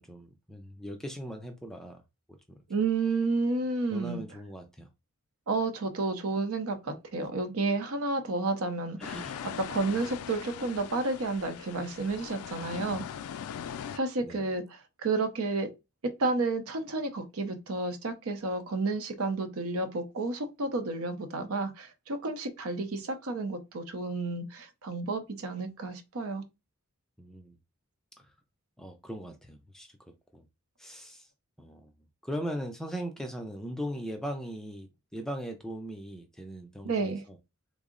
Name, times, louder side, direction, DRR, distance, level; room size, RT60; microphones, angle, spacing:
voice 1, 0.0-2.0 2.3-2.6 3.9-4.9 9.0-9.5 14.2-14.5 27.2-27.6 28.2-28.3 28.8-29.9 30.3-30.5 30.8-31.3 31.6-31.9 32.2-37.4, equal, ahead, 0.4 m, -39 dB
voice 2, 2.7-4.2 5.5-9.0 9.7-13.0 13.9-14.6 15.0-15.7 16.2-26.4 36.8-37.2, right 3 dB, 75° right, 0.6 m, -31 dB
sound 1, 9.0-14.0, left 8 dB, 85° left, 0.3 m, -40 dB
3.6 x 2.0 x 3.6 m
head